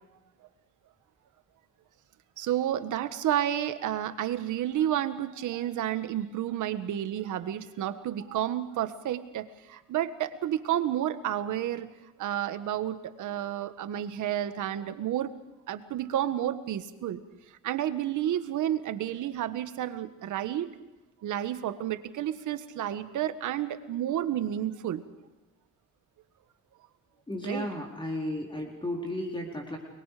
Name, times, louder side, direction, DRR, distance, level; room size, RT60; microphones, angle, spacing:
voice 1, 2.4-11.9 12.2-15.3 15.7-17.2 17.6-20.7 21.2-25.0 27.4-27.7, right 11 dB, 80° right, 10 dB, 1.6 m, -31 dB
voice 2, 27.3-29.8, left 1 dB, 15° left, 0 dB, 4.4 m, -34 dB
30.0 x 22.0 x 5.1 m, 1.1 s
cardioid pair, 90°, 30 cm